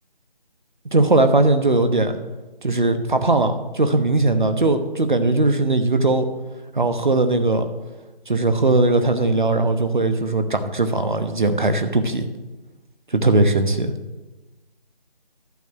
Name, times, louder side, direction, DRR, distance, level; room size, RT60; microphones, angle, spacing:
voice 1, 0.9-2.1 2.6-6.3 6.7-7.6 8.3-12.3 13.1-13.9, right 2 dB, 55° right, 8 dB, 1.0 m, -19 dB
11.5 x 4.7 x 7.4 m, 1.2 s
figure-of-eight pair, 165°, 29 cm